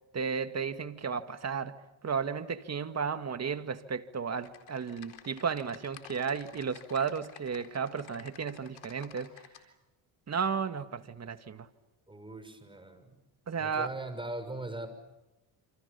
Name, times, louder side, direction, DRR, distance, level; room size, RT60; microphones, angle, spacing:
voice 1, 0.1-1.8 2.0-9.3 10.3-11.7 13.5-13.9, right 6 dB, 35° right, 2.0 m, -33 dB
Typing, 4.4-9.6, left 11 dB, 70° left, 4.1 m, -52 dB
voice 2, 12.1-13.2 13.6-14.9, right 2 dB, 10° right, 6.2 m, -40 dB
28.5 x 28.0 x 7.1 m
cardioid pair, 105°, 47 cm